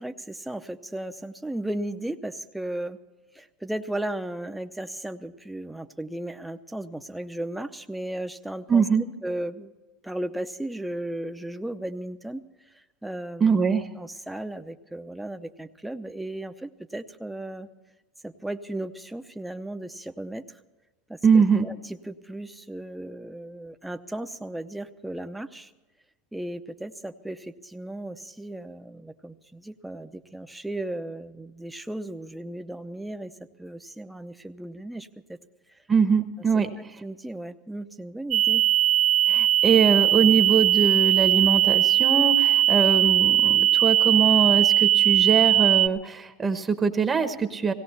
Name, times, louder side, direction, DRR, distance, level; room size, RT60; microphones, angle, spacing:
voice 1, 0.0-3.0 3.3-8.8 9.2-9.7 10.0-12.4 13.0-13.6 14.0-17.7 18.2-20.4 21.1-25.7 26.3-33.3 33.6-35.4 36.8-38.6, right 1 dB, 5° right, 8 dB, 0.8 m, -35 dB
voice 2, 8.7-9.0 13.4-13.9 21.2-21.7 35.9-36.7 39.3-47.7, right 5 dB, 20° right, 8 dB, 1.0 m, -22 dB
sound 1, 38.3-45.9, right 12 dB, 50° right, 0.9 m, -20 dB
17.5 x 17.0 x 4.2 m, 1.1 s
supercardioid pair, 115°, 0 cm